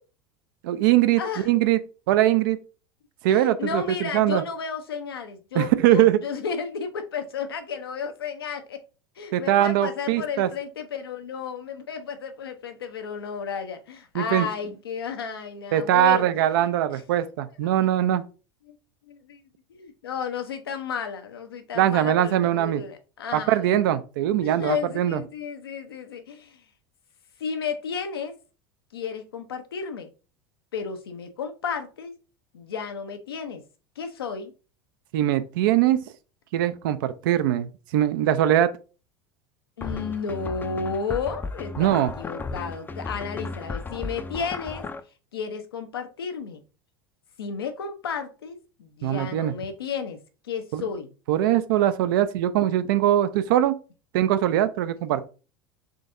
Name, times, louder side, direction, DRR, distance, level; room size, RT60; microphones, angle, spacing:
voice 1, 0.6-1.8 2.1-2.6 3.2-4.4 5.5-6.2 9.3-10.5 14.1-14.5 15.7-18.2 21.8-22.8 23.3-25.2 35.1-36.0 36.5-38.7 41.8-42.1 49.0-49.5 50.7-50.8 51.3-53.8 54.1-55.3, right 12 dB, 65° right, 0.4 m, -21 dB
voice 2, 3.3-8.8 9.2-17.0 17.8-17.9 18.7-18.8 19.1-19.4 19.7-23.6 24.4-26.6 27.4-28.3 28.9-30.1 30.7-32.1 32.5-33.6 34.0-34.5 39.8-44.8 45.3-46.6 47.4-50.2 50.5-51.1, left 6 dB, 80° left, 0.6 m, -33 dB
sound 1, 39.8-45.0, left 3 dB, 15° left, 0.4 m, -35 dB
3.8 x 3.3 x 2.5 m
hypercardioid pair, 80°, 12 cm